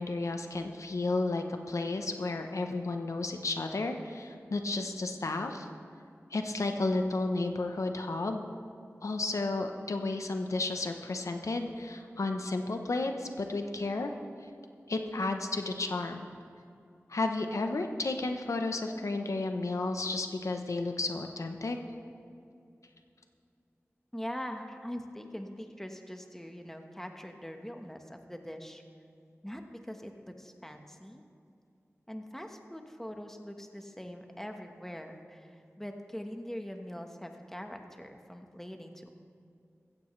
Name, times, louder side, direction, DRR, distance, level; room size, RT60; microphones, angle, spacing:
voice 1, 0.0-5.7 6.3-8.4 9.0-14.1 14.9-16.3 17.1-21.8, left 2 dB, 85° left, 5 dB, 0.9 m, -32 dB
voice 2, 24.1-28.8 29.4-30.1 30.4-31.2 32.1-39.1, equal, 5° left, 4 dB, 1.3 m, -42 dB
15.0 x 15.0 x 3.2 m, 2.4 s
wide cardioid pair, 45°, 5 cm